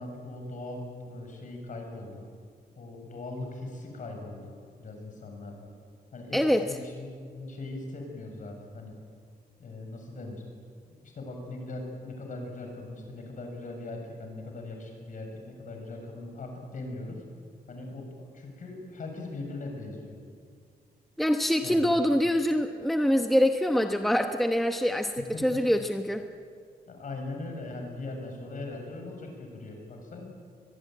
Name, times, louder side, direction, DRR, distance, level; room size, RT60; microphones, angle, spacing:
voice 1, 0.0-2.2 2.8-4.5 4.8-5.7 6.1-9.0 9.6-10.4 11.0-17.2 17.7-18.1 18.3-20.2 21.6-21.8 25.3-25.6 26.9-30.3, left 2 dB, 50° left, 3 dB, 6.8 m, -40 dB
voice 2, 6.3-6.6 21.2-26.2, equal, ahead, 5 dB, 1.0 m, -25 dB
23.0 x 22.5 x 9.3 m, 2.2 s
wide cardioid pair, 135°, 17 cm